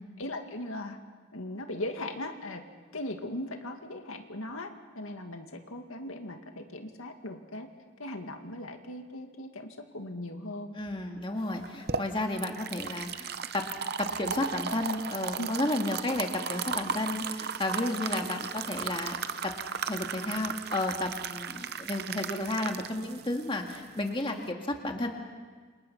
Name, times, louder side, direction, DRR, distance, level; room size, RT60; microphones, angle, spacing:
voice 1, 0.2-1.0 1.3-2.6 2.9-7.7 8.0-10.7 15.4-15.5 21.9-22.0, left 1 dB, 85° left, 5 dB, 2.2 m, -39 dB
voice 2, 10.7-13.6 14.0-19.2 19.9-25.1, left 1 dB, 25° left, 3 dB, 2.0 m, -32 dB
sound 1, 11.5-24.5, right 6 dB, 50° right, 0.8 m, -36 dB
28.5 x 27.0 x 5.8 m, 1.5 s
head